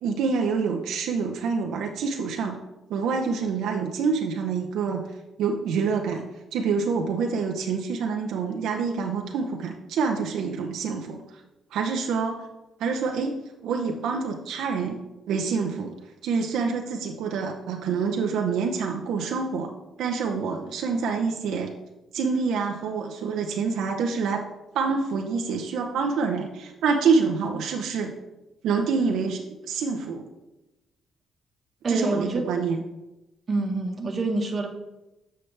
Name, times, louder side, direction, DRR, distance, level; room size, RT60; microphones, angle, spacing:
voice 1, 0.0-2.6 2.9-5.1 5.4-6.3 6.5-11.2 11.7-12.5 12.8-15.0 15.3-15.9 16.2-19.7 20.0-21.7 22.1-24.4 24.7-28.1 28.6-30.2 31.9-32.8, right 5 dB, 80° right, 2 dB, 0.6 m, -26 dB
voice 2, 31.8-32.5 33.5-34.7, right 3 dB, 40° right, 4 dB, 1.1 m, -26 dB
7.9 x 5.6 x 3.3 m, 0.98 s
cardioid pair, 90°, 0 cm